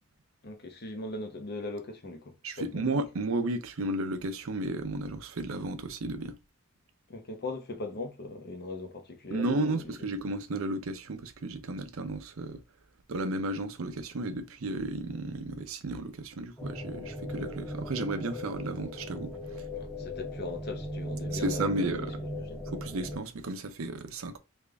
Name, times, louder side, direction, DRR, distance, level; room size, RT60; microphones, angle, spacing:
voice 1, 0.4-2.8 7.1-9.9 19.7-22.1 22.3-22.6, left 2 dB, 50° left, 0.7 m, -39 dB
voice 2, 2.4-6.4 9.3-12.6 13.1-19.4 21.3-22.2 22.7-24.4, right 2 dB, 80° right, 0.6 m, -33 dB
sound 1, 16.6-23.2, left 1 dB, 5° left, 0.6 m, -38 dB
3.4 x 2.5 x 3.4 m
head